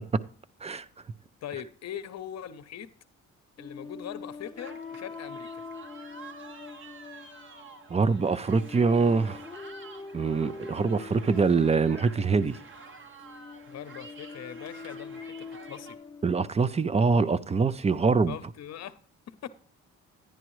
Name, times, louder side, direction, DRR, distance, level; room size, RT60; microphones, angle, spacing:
voice 1, 1.4-2.9 3.6-5.6 13.7-16.0 18.3-19.0 19.4-19.5, left 10 dB, 60° left, 0.8 m, -41 dB
sound 1, 3.6-16.5, left 4 dB, 10° left, 0.8 m, -44 dB
sound 2, 4.6-15.9, right 3 dB, 40° right, 1.2 m, -48 dB
voice 2, 7.9-9.4 10.1-12.6 16.2-18.4, right 4 dB, 20° right, 0.5 m, -24 dB
10.5 x 9.9 x 3.1 m
cardioid pair, 90°, 30 cm